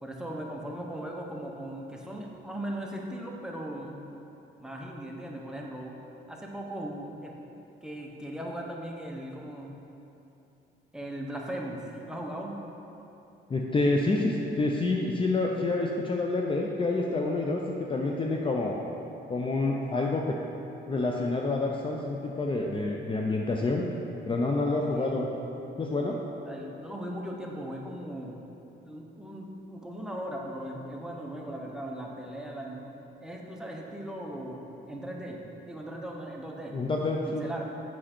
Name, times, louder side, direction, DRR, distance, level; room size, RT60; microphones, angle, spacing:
voice 1, 0.0-4.0 4.6-5.9 6.3-7.3 7.8-9.8 10.9-12.6 24.9-25.2 26.4-28.4 28.8-35.4 35.6-36.8 37.3-37.7, right 1 dB, 5° right, -1 dB, 1.0 m, -38 dB
voice 2, 13.5-18.8 19.3-20.4 20.9-23.9 24.2-25.3 25.8-26.2 36.7-37.4, left 2 dB, 25° left, 0 dB, 0.6 m, -28 dB
7.5 x 5.6 x 4.3 m, 2.9 s
cardioid pair, 90°, 20 cm